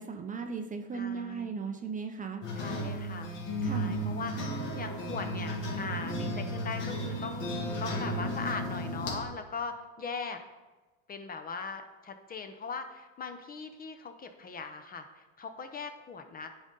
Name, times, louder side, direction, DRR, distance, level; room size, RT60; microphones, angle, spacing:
voice 1, 0.0-2.5 3.6-4.0, right 5 dB, 20° right, 5 dB, 0.5 m, -37 dB
voice 2, 0.9-1.5 2.5-3.3 3.6-10.4 11.1-16.5, left 5 dB, 25° left, 7 dB, 0.6 m, -40 dB
sound 1, 2.4-9.2, equal, 60° left, 2.1 m, -34 dB
10.0 x 4.0 x 3.8 m, 1.2 s
supercardioid pair, 110°, 36 cm